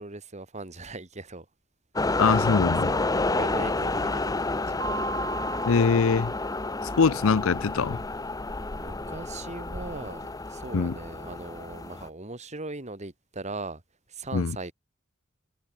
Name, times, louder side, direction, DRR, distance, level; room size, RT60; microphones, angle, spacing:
voice 1, 0.0-1.5 2.0-2.4 2.8-4.8 8.8-13.8 14.1-14.7, right 2 dB, 35° right, 2.4 m, -39 dB
sound 1, 2.0-12.1, left 2 dB, 15° left, 0.9 m, -30 dB
voice 2, 2.2-2.9 5.7-6.3 7.0-8.0 10.7-11.0 14.3-14.6, left 5 dB, 75° left, 0.6 m, -23 dB
Mallet percussion, 4.8-7.4, right 4 dB, 70° right, 4.9 m, -38 dB
head